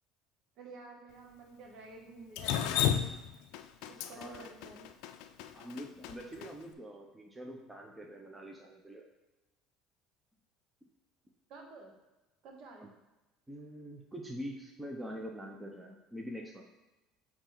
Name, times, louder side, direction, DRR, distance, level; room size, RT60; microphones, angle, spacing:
voice 1, 0.6-2.9 4.1-4.9 11.5-11.9 12.4-12.9, right 3 dB, 60° right, 1 dB, 1.3 m, -51 dB
Drip, 2.4-6.5, left 9 dB, 75° left, 0.4 m, -32 dB
voice 2, 4.0-4.4 5.5-9.1 12.8-12.9 13.5-16.7, equal, 10° right, 1 dB, 0.8 m, -44 dB
8.6 x 3.1 x 4.0 m, 1.1 s
supercardioid pair, 105°, 0 cm